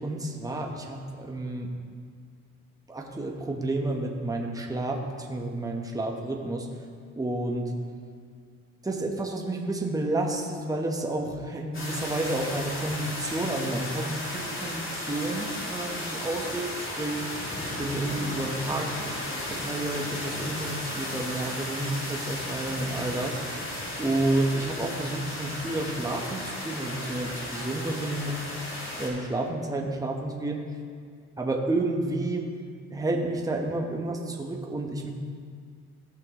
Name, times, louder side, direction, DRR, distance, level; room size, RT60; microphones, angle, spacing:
voice 1, 0.0-1.7 2.9-6.7 7.2-7.7 8.8-17.2 17.8-19.1 19.5-23.7 24.0-28.4 29.0-30.6 31.4-32.4 32.9-35.1, right 2 dB, 10° right, 1 dB, 1.0 m, -30 dB
sound 1, 11.7-29.1, left 1 dB, 45° left, 2.4 m, -34 dB
14.5 x 5.8 x 3.0 m, 2.1 s
cardioid pair, 90°, 30 cm